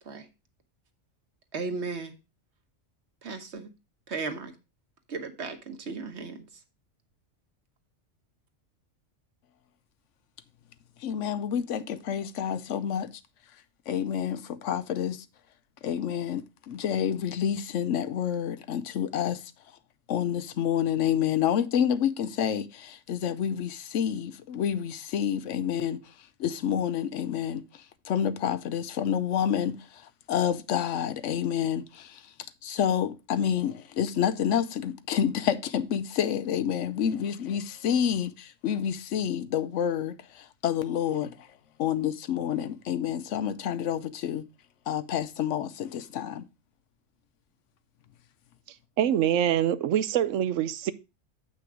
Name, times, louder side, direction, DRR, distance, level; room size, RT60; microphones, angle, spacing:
voice 1, 1.5-2.1 3.2-3.7 4.1-4.5 5.1-6.4, right 4 dB, 65° right, 1.5 m, -35 dB
voice 2, 11.0-13.1 13.9-15.2 15.8-19.5 20.1-26.0 26.4-32.2 32.6-41.5 41.8-44.5 44.9-46.4, left 9 dB, 80° left, 1.0 m, -28 dB
voice 3, 49.0-50.9, right 10 dB, 85° right, 1.0 m, -25 dB
7.8 x 5.9 x 4.8 m
omnidirectional pair, 1.3 m